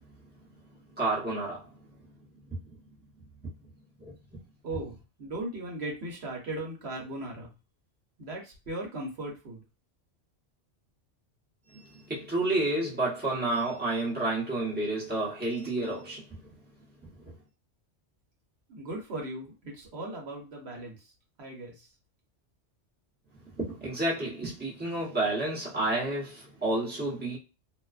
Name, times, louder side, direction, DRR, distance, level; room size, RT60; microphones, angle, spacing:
voice 1, 0.9-2.0 2.5-2.6 3.4-3.5 4.0-4.1 11.7-16.5 17.2-17.3 23.4-27.4, right 2 dB, 10° right, 0.8 m, -30 dB
voice 2, 4.6-7.5 8.2-9.6 18.7-21.1 21.4-21.9, right 2 dB, 65° right, 1.0 m, -38 dB
2.5 x 2.1 x 2.3 m
omnidirectional pair, 1.2 m